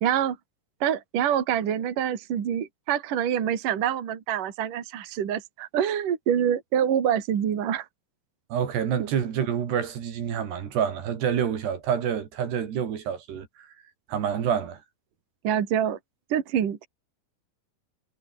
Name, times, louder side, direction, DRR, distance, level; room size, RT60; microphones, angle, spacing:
voice 1, 0.0-0.4 0.8-7.9 9.0-9.1 15.4-16.0 16.3-16.9, right 9 dB, 50° right, 3.7 m, -26 dB
voice 2, 8.5-13.5 14.1-14.8, right 8 dB, 70° right, 4.8 m, -27 dB
omnidirectional pair, 5.1 m